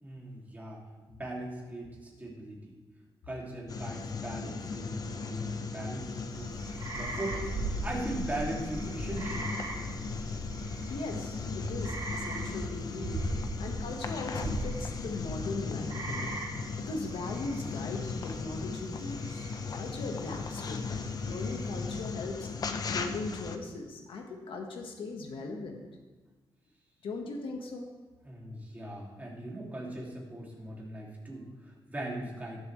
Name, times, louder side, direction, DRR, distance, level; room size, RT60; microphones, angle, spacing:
voice 1, 0.0-0.8 1.1-2.7 3.3-6.5 6.9-9.5 28.2-32.6, right 1 dB, 20° right, -3 dB, 2.7 m, -39 dB
sound 1, 3.7-23.6, left 4 dB, 45° left, 0.8 m, -37 dB
sound 2, 6.1-22.3, right 2 dB, 55° right, 2.3 m, -40 dB
voice 2, 10.9-13.2 13.6-16.4 16.8-22.5 22.9-25.8 27.0-27.9, left 3 dB, 80° left, 2 dB, 1.6 m, -39 dB
18.5 x 7.5 x 3.3 m, 1.3 s
wide cardioid pair, 155°, 9 cm